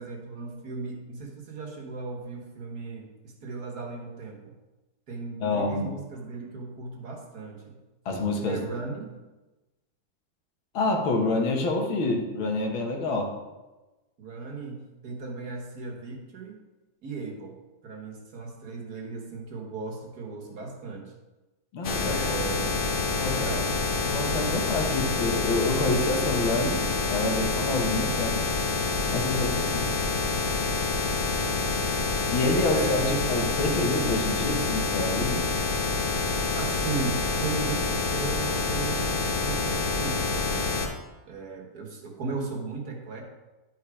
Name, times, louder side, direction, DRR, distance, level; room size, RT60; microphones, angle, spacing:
voice 1, 0.0-4.6 5.1-7.7 8.4-9.2 14.2-16.6 17.0-17.6 17.8-21.1 22.0-22.8 23.3-23.7 31.3-32.0 32.7-33.2 36.5-40.7 41.3-43.2, right 4 dB, 55° right, 1 dB, 1.8 m, -36 dB
voice 2, 5.4-5.9 8.1-8.6 10.7-13.3 21.7-22.2 23.2-23.6 24.0-28.5 29.1-29.9 32.3-35.6, left 2 dB, 85° left, 2 dB, 2.1 m, -27 dB
sound 1, 21.8-40.9, left 3 dB, 40° left, 0.8 m, -27 dB
11.0 x 4.8 x 4.8 m, 1.1 s
omnidirectional pair, 2.1 m